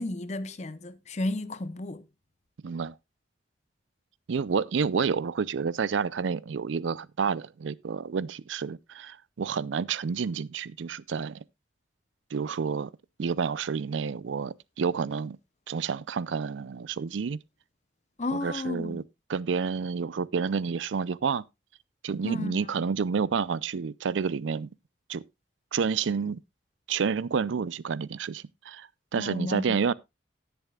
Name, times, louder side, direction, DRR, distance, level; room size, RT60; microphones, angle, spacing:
voice 1, 0.0-2.0 18.2-19.0 22.2-22.5 29.2-29.8, left 2 dB, 35° left, 0.7 m, -33 dB
voice 2, 2.6-2.9 4.3-11.4 12.3-12.9 13.2-15.4 15.7-17.4 18.3-19.0 19.3-21.4 22.0-24.7 25.1-25.2 25.7-26.4 26.9-29.9, right 6 dB, 85° right, 0.4 m, -29 dB
18.5 x 6.9 x 2.3 m
head